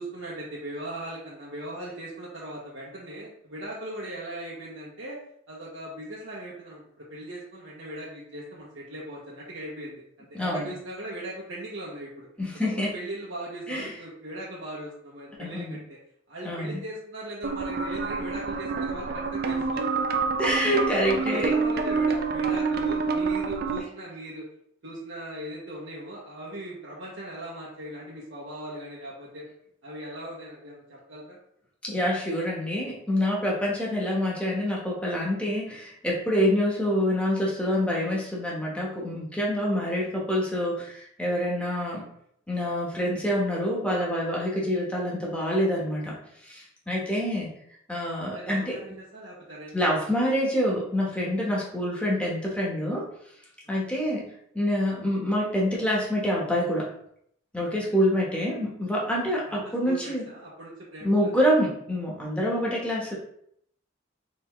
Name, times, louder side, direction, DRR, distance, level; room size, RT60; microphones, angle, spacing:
voice 1, 0.0-5.2 5.5-12.3 12.8-16.0 16.3-20.2 20.7-24.5 24.8-29.5 29.8-31.4 46.8-47.2 48.3-50.5 53.8-54.0 57.7-57.8 59.5-61.4 62.7-62.8, right 1 dB, 85° right, -6 dB, 1.0 m, -39 dB
voice 2, 10.3-10.7 12.4-12.9 13.7-13.9 15.4-15.8 16.4-16.8 20.4-21.5 31.8-42.0 42.5-46.2 46.5-47.5 47.9-48.7 49.7-53.1 53.7-54.2 54.5-56.9 57.5-60.2 61.0-63.1, equal, 5° left, -4 dB, 1.1 m, -26 dB
sound 1, 17.4-23.8, right 4 dB, 50° right, 0.4 m, -27 dB
4.2 x 3.5 x 3.1 m, 0.70 s
head